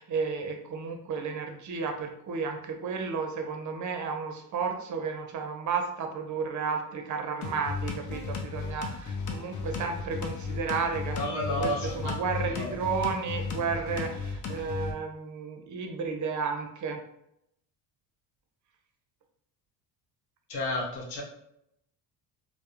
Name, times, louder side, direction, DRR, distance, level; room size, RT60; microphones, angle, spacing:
voice 1, 0.0-17.0, right 5 dB, 45° right, 4 dB, 0.6 m, -33 dB
sound 1, 7.4-14.9, left 4 dB, 45° left, 0.5 m, -35 dB
voice 2, 11.2-12.7 20.5-21.2, left 1 dB, 70° left, -1 dB, 0.9 m, -32 dB
2.2 x 2.1 x 2.8 m, 0.77 s
cardioid pair, 100°, 44 cm